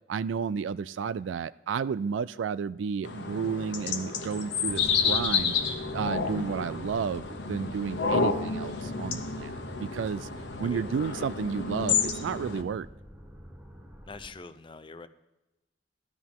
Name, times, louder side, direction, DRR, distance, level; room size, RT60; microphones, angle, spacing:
voice 1, 0.1-5.5 5.9-10.3 10.6-12.9, right 6 dB, 90° right, 16 dB, 0.3 m, -32 dB
sound 1, 3.0-12.6, left 5 dB, 70° left, 1.2 m, -30 dB
sound 2, 4.6-14.3, equal, 10° right, 2.1 m, -46 dB
voice 2, 14.1-15.1, left 4 dB, 25° left, 12 dB, 0.6 m, -44 dB
15.5 x 12.5 x 3.7 m, 0.99 s
head